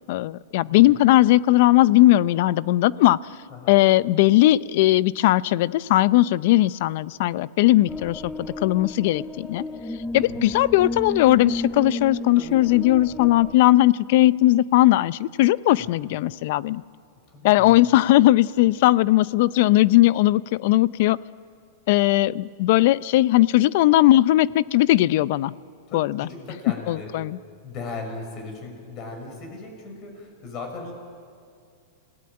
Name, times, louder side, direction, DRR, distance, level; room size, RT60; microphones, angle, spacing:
voice 1, 0.1-3.2 3.7-9.6 10.1-16.8 17.4-21.2 21.9-25.5 25.9-26.3 26.9-27.4, left 16 dB, 55° left, 19 dB, 0.5 m, -18 dB
voice 2, 0.7-1.0 3.5-3.8 10.1-10.5 12.3-12.8 15.8-16.0 17.3-17.8 25.9-27.1 27.6-30.9, left 3 dB, 35° left, 3 dB, 6.3 m, -38 dB
sound 1, 7.9-13.6, left 2 dB, 5° left, 0.8 m, -33 dB
28.5 x 17.5 x 8.8 m, 2.3 s
supercardioid pair, 145°, 0 cm